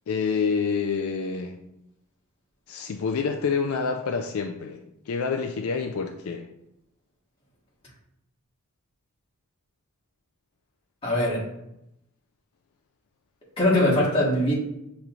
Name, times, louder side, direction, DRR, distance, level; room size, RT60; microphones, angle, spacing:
voice 1, 0.1-1.6 2.7-6.5, left 5 dB, 65° left, 4 dB, 0.4 m, -27 dB
voice 2, 11.0-11.5 13.6-14.5, left 1 dB, 25° left, -6 dB, 1.4 m, -21 dB
6.7 x 3.1 x 2.4 m, 0.84 s
head